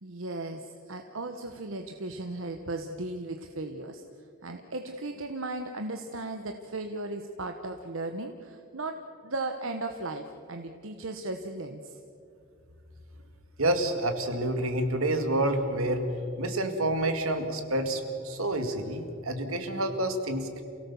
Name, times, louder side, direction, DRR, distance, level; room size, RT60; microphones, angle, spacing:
voice 1, 0.0-9.0 9.2-12.0, right 2 dB, 70° right, 5 dB, 1.1 m, -36 dB
voice 2, 13.6-16.1 16.4-20.6, right 1 dB, 85° right, 6 dB, 2.3 m, -28 dB
28.5 x 17.5 x 7.1 m, 2.5 s
head